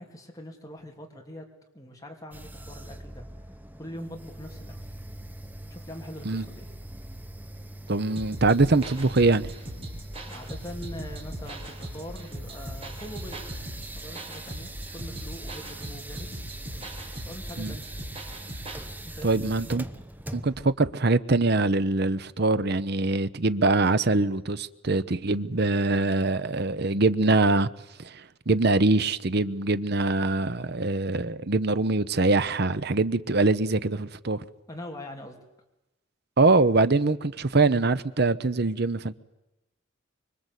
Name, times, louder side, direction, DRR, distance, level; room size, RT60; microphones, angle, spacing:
voice 1, 0.0-1.5 1.7-3.2 3.8-4.9 5.7-6.7 10.3-13.4 13.9-16.4 17.2-17.9 19.0-19.5 34.7-35.4, equal, 15° left, 3.1 m, -42 dB
sound 1, 2.3-20.7, right 1 dB, 10° right, 0.9 m, -42 dB
voice 2, 7.9-9.5 17.6-17.8 19.2-19.8 20.3-27.7 28.0-34.4 36.4-39.2, right 3 dB, 55° right, 0.9 m, -23 dB
sound 2, 8.2-18.8, right 1 dB, 30° right, 4.9 m, -40 dB
25.0 x 24.0 x 8.3 m
head